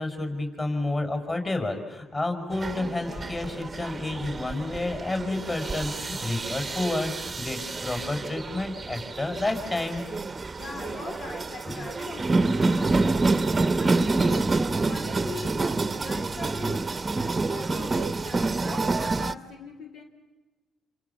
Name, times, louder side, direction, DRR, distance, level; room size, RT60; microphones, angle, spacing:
voice 1, 0.0-10.0 11.6-11.9, left 2 dB, 30° left, 5.9 m, -30 dB
sound 1, 2.5-19.3, right 3 dB, 25° right, 0.9 m, -28 dB
voice 2, 10.6-20.0, left 3 dB, 70° left, 3.4 m, -41 dB
28.5 x 28.0 x 7.2 m
cardioid pair, 90°, 0 cm